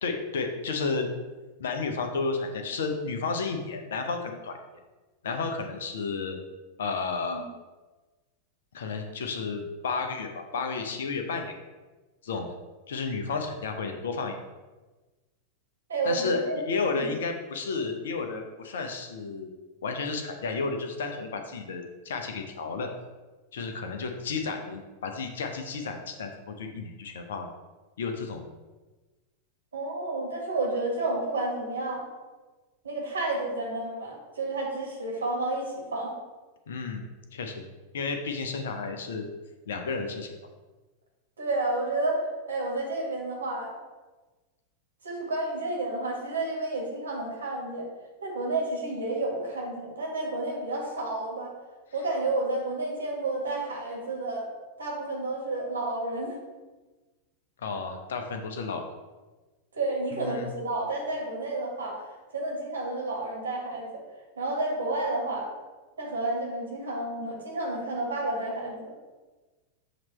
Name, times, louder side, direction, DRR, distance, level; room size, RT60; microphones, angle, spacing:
voice 1, 0.0-1.1 1.6-4.6 5.2-6.4 6.8-7.4 8.7-11.6 12.2-12.6 12.9-14.4 16.0-19.5 19.8-22.9 23.5-26.3 26.6-27.5 28.0-28.4 36.7-37.0 37.3-37.6 37.9-39.3 39.7-40.3 57.6-58.8 60.1-60.5, left 4 dB, 60° left, 5 dB, 0.7 m, -32 dB
voice 2, 15.9-16.6 16.9-17.1 29.7-32.0 32.8-36.1 41.4-43.7 45.0-47.9 48.2-51.5 51.9-54.5 54.8-56.4 59.7-62.0 62.3-63.9 64.4-65.5 66.0-68.9, right 2 dB, 70° right, -2 dB, 1.8 m, -30 dB
7.6 x 3.0 x 4.2 m, 1.2 s
figure-of-eight pair, 90°, 0 cm